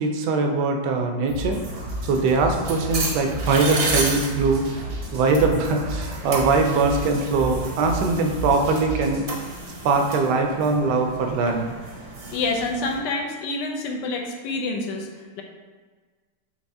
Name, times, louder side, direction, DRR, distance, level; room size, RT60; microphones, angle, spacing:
voice 1, 0.0-1.6 2.0-4.6 5.1-9.3 9.8-11.7, right 3 dB, 75° right, 3 dB, 1.1 m, -22 dB
sound 1, 1.3-9.3, right 1 dB, 90° right, 1.7 m, -33 dB
sound 2, 1.4-13.0, right 2 dB, 55° right, 0.8 m, -33 dB
voice 2, 12.3-15.4, left 3 dB, 75° left, 2 dB, 1.2 m, -27 dB
4.6 x 3.0 x 2.6 m, 1.5 s
omnidirectional pair, 2.0 m